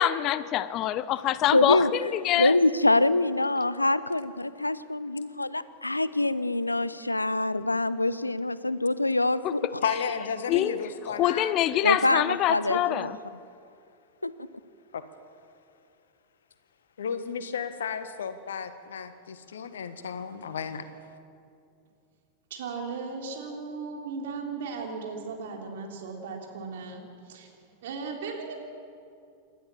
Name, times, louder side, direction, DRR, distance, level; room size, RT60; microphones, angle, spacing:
voice 1, 0.0-2.6 9.4-9.7 10.5-13.2, left 12 dB, 35° left, 17 dB, 0.6 m, -25 dB
voice 2, 1.5-9.8 11.8-13.1 14.2-14.3, left 2 dB, 85° left, 17 dB, 0.6 m, -25 dB
voice 3, 9.8-11.6 14.9-15.0 17.0-21.0, left 6 dB, 65° left, 11 dB, 1.4 m, -33 dB
voice 4, 22.5-27.5 27.8-28.6, right 4 dB, 55° right, 1 dB, 3.7 m, -36 dB
28.5 x 13.0 x 7.3 m, 2.5 s
figure-of-eight pair, 90°, 0 cm